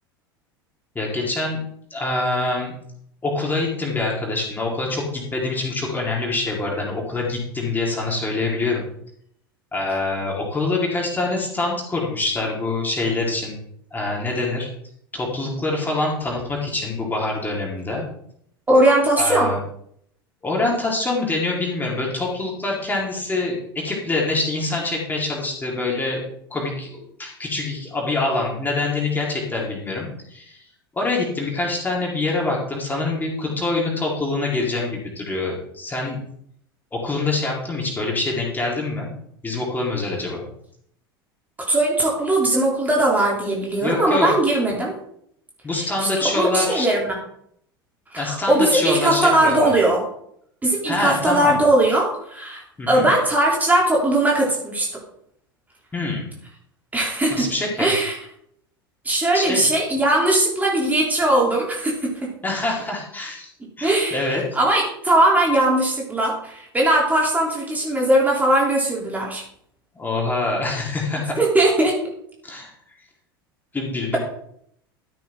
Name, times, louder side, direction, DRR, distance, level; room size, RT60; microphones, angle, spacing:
voice 1, 0.9-1.6 1.9-2.8 3.2-8.8 9.7-13.6 13.9-14.7 15.1-18.1 19.2-19.6 20.4-26.2 26.5-30.6 30.9-36.2 36.9-39.1 39.4-40.4 43.8-44.3 45.6-46.9 48.1-49.9 50.8-51.6 52.8-53.1 55.9-56.3 57.3-57.9 59.3-59.7 62.4-63.5 63.8-64.4 69.9-71.4 72.4-72.7 73.7-74.2, left 2 dB, 15° left, -2 dB, 4.3 m, -25 dB
voice 2, 18.7-19.5 41.7-44.9 46.0-46.1 46.4-47.2 48.1-50.0 50.6-54.9 56.9-57.5 57.8-58.2 59.1-62.3 63.8-69.4 71.4-72.0, right 1 dB, 15° right, -2 dB, 3.4 m, -19 dB
13.5 x 9.4 x 3.8 m, 0.69 s
figure-of-eight pair, 80°, 12 cm